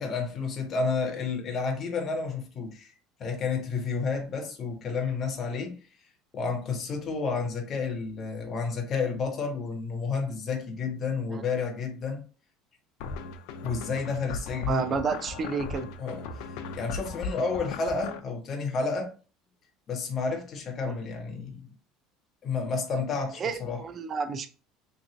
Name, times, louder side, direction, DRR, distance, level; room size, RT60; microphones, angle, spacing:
voice 1, 0.0-2.9 3.2-5.8 6.3-12.2 13.6-15.0 16.0-19.1 19.9-21.7 22.4-23.8, left 4 dB, 30° left, 0.6 m, -31 dB
sound 1, 13.0-18.2, left 4 dB, 70° left, 0.4 m, -37 dB
voice 2, 14.7-15.9 20.9-21.0 23.4-24.5, right 5 dB, 25° right, 0.3 m, -30 dB
3.4 x 3.0 x 2.7 m
cardioid pair, 165°, 0 cm